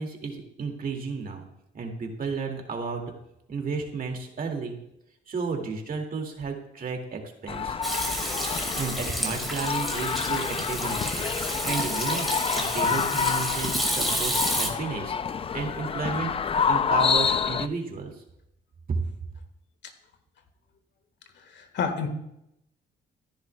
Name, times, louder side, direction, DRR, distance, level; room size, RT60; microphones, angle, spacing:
voice 1, 0.0-1.5 1.7-3.0 3.5-4.8 5.3-7.8 8.8-12.3 12.5-15.2 15.5-16.3 16.7-18.1 18.9-19.0, right 4 dB, 45° right, 3 dB, 2.2 m, -32 dB
sound 1, 7.5-17.7, left 6 dB, 30° left, 0.4 m, -28 dB
Hands / Sink (filling or washing), 7.8-14.7, right 1 dB, ahead, 2.0 m, -30 dB
voice 2, 21.4-22.1, left 6 dB, 65° left, 7 dB, 1.6 m, -30 dB
15.0 x 10.5 x 2.3 m, 0.81 s
cardioid pair, 90°, 20 cm